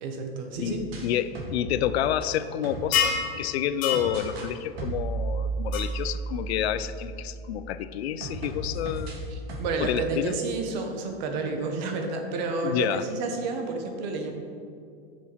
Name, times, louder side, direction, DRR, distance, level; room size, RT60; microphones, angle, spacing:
voice 1, 0.0-0.8 9.3-14.3, right 3 dB, 45° right, 4 dB, 1.1 m, -30 dB
sound 1, 0.5-3.2 3.9-4.5 4.8-7.8 8.2-9.8, right 3 dB, 80° right, 1.8 m, -34 dB
voice 2, 0.6-9.2 9.8-10.3 12.6-13.0, left 10 dB, 85° left, 13 dB, 0.5 m, -29 dB
sound 2, 2.9-3.3 3.8-4.1 5.7-5.8, left 7 dB, 25° left, 0.7 m, -24 dB
7.2 x 6.5 x 4.5 m, 2.4 s
supercardioid pair, 165°, 31 cm